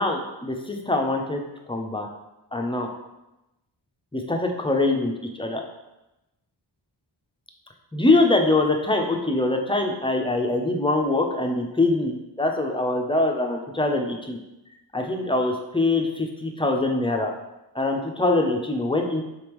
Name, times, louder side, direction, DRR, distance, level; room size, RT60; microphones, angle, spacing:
voice 1, 0.0-1.4 1.7-2.1 2.5-2.9 4.1-5.6 7.9-14.4 14.9-17.3 17.7-19.2, left 2 dB, 10° left, 2 dB, 0.5 m, -23 dB
4.3 x 3.4 x 3.0 m, 0.95 s
wide cardioid pair, 65°, 44 cm